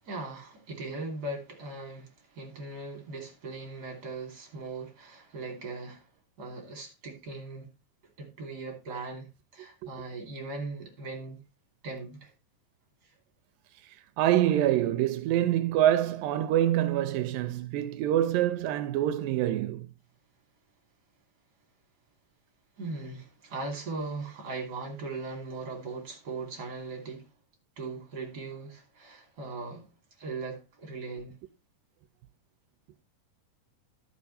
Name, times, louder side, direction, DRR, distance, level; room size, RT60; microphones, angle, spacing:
voice 1, 0.0-6.0 6.4-7.7 8.2-9.3 9.5-11.4 11.8-12.3 22.8-27.3 27.8-29.9 30.2-31.3, right 3 dB, 30° right, 3.1 m, -39 dB
voice 2, 14.2-19.9, right 12 dB, 85° right, 2.4 m, -26 dB
11.5 x 6.2 x 4.2 m
omnidirectional pair, 3.9 m